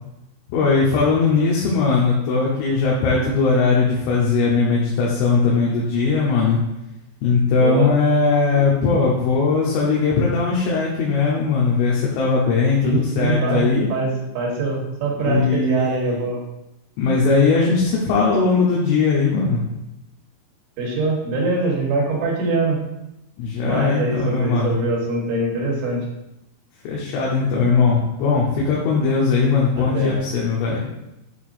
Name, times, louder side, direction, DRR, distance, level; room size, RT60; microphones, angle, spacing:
voice 1, 0.5-6.6 7.2-13.9 15.2-16.2 17.0-19.7 23.4-24.8 26.9-30.9, left 4 dB, 85° left, -4 dB, 3.5 m, -19 dB
voice 2, 7.5-7.9 8.5-8.7 12.8-16.4 20.8-22.8 23.6-26.1 29.8-30.2, right 3 dB, 70° right, -2 dB, 3.5 m, -23 dB
9.0 x 4.5 x 2.5 m, 0.91 s
omnidirectional pair, 5.7 m